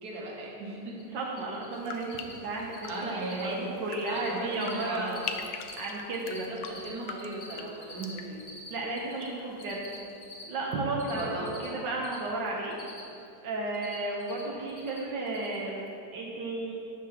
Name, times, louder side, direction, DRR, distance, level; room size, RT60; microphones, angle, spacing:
voice 1, 0.0-1.1 2.8-3.8 4.1-5.3 6.3-8.5 11.1-11.8, right 2 dB, 60° right, -2 dB, 1.8 m, -37 dB
Cricket, 0.9-1.0 1.3-1.7 2.0-2.3 2.6-3.0 3.2-3.5 3.8-4.3 4.5-5.8 6.1-9.3 9.6-12.2 12.5-13.3 13.5-14.4 14.7-15.0 15.3-15.6, left 2 dB, 45° left, 1.6 m, -46 dB
voice 2, 1.1-3.6 3.8-5.2 5.8-6.5 8.7-9.8 10.4-12.8 13.4-16.7, right 2 dB, 80° right, -3 dB, 1.6 m, -33 dB
sound 1, 1.7-9.7 9.9-10.5, left 7 dB, 85° left, 1.3 m, -44 dB
12.0 x 8.2 x 2.9 m, 2.8 s
omnidirectional pair, 1.9 m